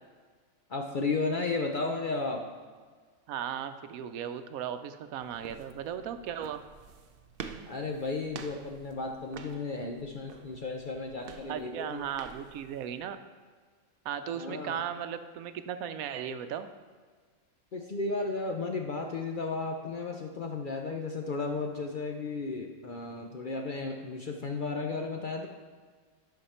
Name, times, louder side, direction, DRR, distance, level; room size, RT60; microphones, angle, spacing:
voice 1, 0.7-2.4 7.7-12.0 14.3-14.8 17.7-25.5, left 3 dB, 50° left, 2 dB, 0.6 m, -34 dB
voice 2, 3.3-6.6 11.5-13.2 14.0-16.7, right 9 dB, 85° right, 10 dB, 1.0 m, -36 dB
sound 1, 5.2-13.0, right 6 dB, 60° right, 0.6 m, -48 dB
10.5 x 5.7 x 4.3 m, 1.5 s
omnidirectional pair, 1.5 m